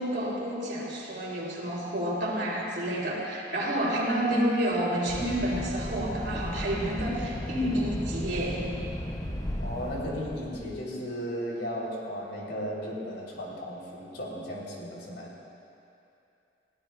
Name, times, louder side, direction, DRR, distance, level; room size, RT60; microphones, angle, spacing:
voice 1, 0.0-8.7, right 1 dB, 70° right, -4 dB, 2.9 m, -29 dB
sound 1, 5.1-10.7, left 1 dB, 20° left, 0.7 m, -35 dB
voice 2, 9.6-15.3, equal, 80° left, -4 dB, 3.2 m, -35 dB
21.5 x 16.5 x 2.2 m, 2.8 s
head